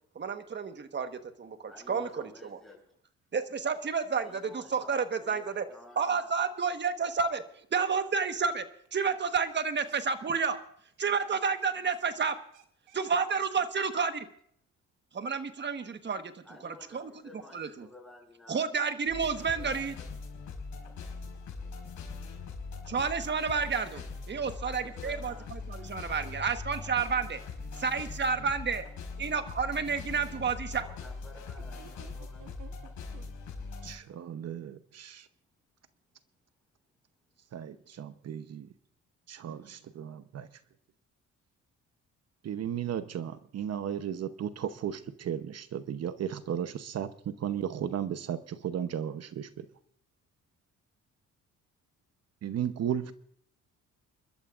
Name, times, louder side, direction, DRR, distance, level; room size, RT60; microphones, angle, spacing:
voice 1, 0.1-2.6 3.3-5.6 6.0-7.4 7.7-8.7 8.9-10.6 11.0-12.4 12.9-14.3 15.1-17.1 17.5-17.9 18.5-19.9 22.9-24.0 24.3-27.4 27.8-28.8 29.2-30.8, right 5 dB, 35° right, 1.3 m, -30 dB
voice 2, 1.7-2.9 4.1-6.3 16.4-19.0 19.5-19.7 23.9-24.1 24.5-25.5 30.8-32.4 37.8-37.9, left 2 dB, ahead, 6.4 m, -52 dB
voice 3, 12.5-13.0 31.8-32.7 33.1-33.3, right 9 dB, 80° right, 1.2 m, -54 dB
sound 1, 19.1-34.0, left 4 dB, 70° left, 4.9 m, -41 dB
voice 4, 33.8-35.2 37.5-38.7 39.3-40.5 42.4-49.7 52.4-53.1, right 9 dB, 55° right, 0.9 m, -35 dB
29.5 x 12.5 x 2.5 m
cardioid pair, 90°, 30 cm